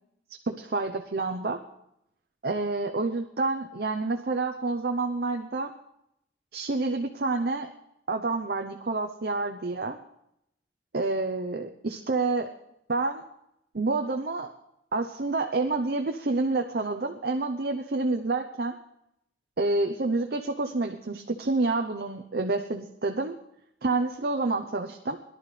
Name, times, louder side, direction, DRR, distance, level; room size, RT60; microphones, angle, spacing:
voice 1, 0.5-1.6 2.4-5.7 6.5-7.7 8.1-10.0 10.9-12.5 12.9-13.2 13.7-14.5 14.9-18.7 19.6-23.4 23.8-25.2, right 3 dB, 55° right, 4 dB, 0.8 m, -28 dB
22.0 x 11.5 x 3.3 m, 0.80 s
head